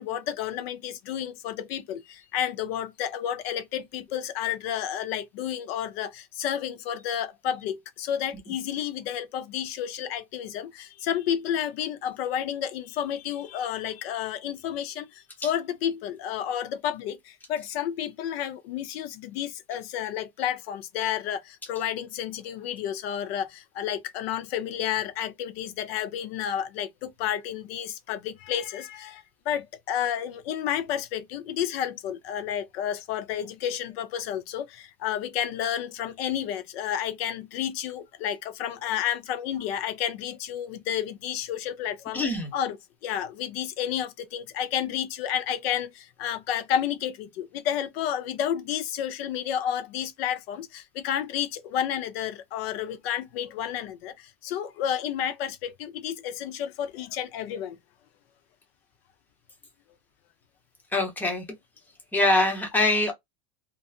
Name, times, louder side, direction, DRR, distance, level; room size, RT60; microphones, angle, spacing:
voice 1, 0.0-42.2 42.5-42.8 43.0-57.8, left 10 dB, 70° left, 0.6 m, -31 dB
voice 2, 42.1-42.5 60.9-61.6 62.1-63.1, left 2 dB, 5° left, 0.7 m, -23 dB
2.6 x 2.4 x 2.4 m
supercardioid pair, 155°, 31 cm